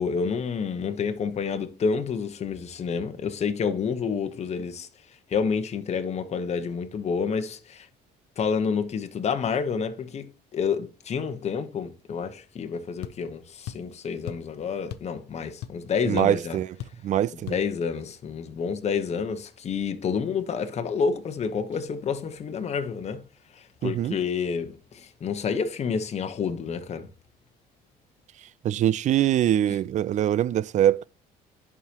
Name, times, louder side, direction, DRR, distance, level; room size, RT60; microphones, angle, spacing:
voice 1, 0.0-4.9 5.3-7.9 8.4-10.3 10.5-16.6 17.5-23.2 23.5-27.1, left 6 dB, 40° left, 1.1 m, -29 dB
sound 1, 13.0-13.2 13.7-13.9 14.3-14.5 14.9-15.1 15.4-15.9 16.2-16.3 16.8-17.0 17.5-17.6, left 12 dB, 75° left, 0.6 m, -37 dB
voice 2, 16.1-16.7 17.0-17.6 23.8-24.2 28.6-31.0, right 11 dB, 45° right, 0.4 m, -23 dB
11.0 x 4.9 x 3.0 m
cardioid pair, 110°, 17 cm